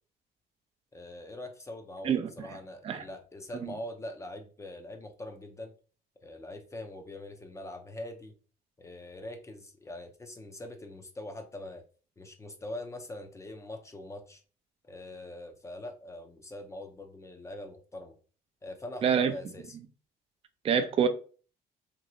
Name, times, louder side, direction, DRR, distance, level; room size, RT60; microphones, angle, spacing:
voice 1, 0.9-5.7 6.2-8.3 8.8-11.8 12.2-14.4 14.8-18.1 18.6-19.7, left 1 dB, 15° left, 0.5 m, -43 dB
voice 2, 2.0-2.5 2.8-3.0 3.6-3.7 19.0-19.3 20.6-21.1, right 7 dB, 35° right, 0.4 m, -26 dB
3.0 x 2.8 x 2.6 m
cardioid pair, 110°, 17 cm